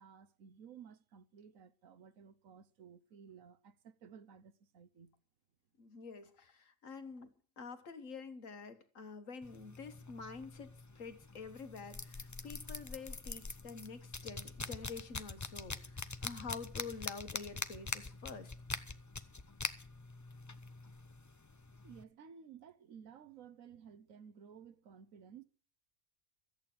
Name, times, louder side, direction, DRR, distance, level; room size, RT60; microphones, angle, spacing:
voice 1, 0.0-5.2 21.8-25.4, right 7 dB, 75° right, 1.3 m, -56 dB
voice 2, 5.8-18.5, left 4 dB, 65° left, 1.7 m, -48 dB
sound 1, 9.4-22.0, left 3 dB, 25° left, 0.4 m, -45 dB
14.0 x 8.8 x 7.6 m
omnidirectional pair, 1.4 m